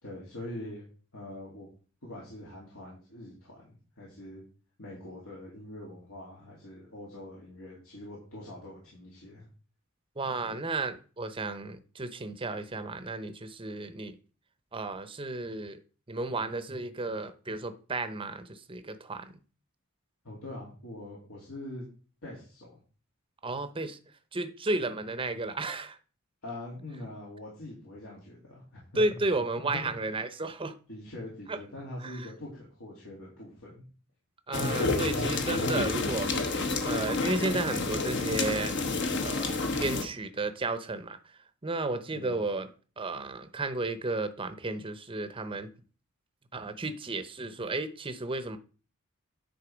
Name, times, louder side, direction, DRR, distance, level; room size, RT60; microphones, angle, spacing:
voice 1, 0.0-0.8 1.1-1.7 2.0-4.4 4.8-9.5 10.4-10.6 20.2-21.9 22.2-22.8 26.4-28.8 29.1-29.2 29.6-29.8 30.9-33.8 34.6-34.9 42.1-42.4, left 1 dB, 80° left, 3.0 m, -43 dB
voice 2, 10.2-14.2 14.7-15.8 16.1-19.3 23.4-24.0 24.3-26.0 29.0-30.7 31.5-31.6 32.0-32.3 34.5-38.8 39.2-42.7 43.0-45.7 46.5-48.6, right 2 dB, 25° right, 0.7 m, -33 dB
sound 1, 34.5-40.0, left 3 dB, 55° left, 1.2 m, -29 dB
9.9 x 4.0 x 5.1 m
head